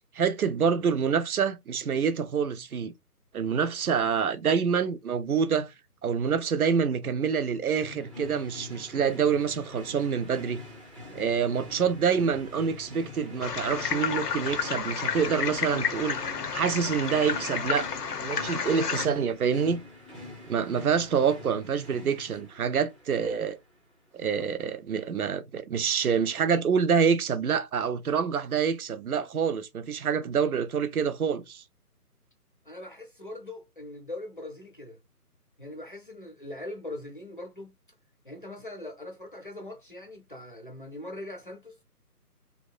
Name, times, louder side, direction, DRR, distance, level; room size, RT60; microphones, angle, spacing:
voice 1, 0.1-2.9 3.3-5.7 6.0-10.6 11.1-17.9 18.2-19.8 20.5-23.6 24.1-31.6, right 6 dB, 65° right, 0.6 m, -27 dB
sound 1, 7.8-23.6, left 2 dB, 20° right, 0.7 m, -45 dB
sound 2, 13.4-19.1, left 7 dB, 75° left, 0.7 m, -31 dB
voice 2, 32.6-35.0 35.6-37.7 38.2-41.7, left 1 dB, 35° left, 0.5 m, -41 dB
2.8 x 2.2 x 2.5 m
figure-of-eight pair, 160°, 47 cm